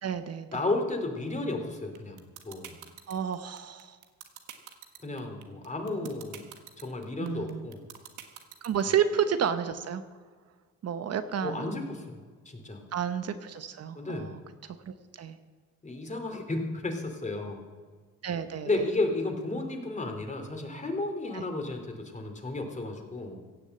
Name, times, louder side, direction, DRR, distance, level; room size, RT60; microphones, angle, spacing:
voice 1, 0.0-0.6 3.1-4.0 7.2-7.7 8.6-10.0 10.8-11.8 12.9-15.4 18.2-18.7 21.3-21.4, right 8 dB, 55° right, 10 dB, 0.9 m, -31 dB
voice 2, 0.5-2.7 5.0-6.4 6.8-7.8 11.4-12.1 12.4-12.8 13.9-14.4 15.8-17.6 18.6-23.4, left 2 dB, 25° left, 4 dB, 2.8 m, -33 dB
sound 1, 2.0-8.9, right 11 dB, 90° right, 1.4 m, -44 dB
16.5 x 7.2 x 7.7 m, 1.5 s
cardioid pair, 90°, 30 cm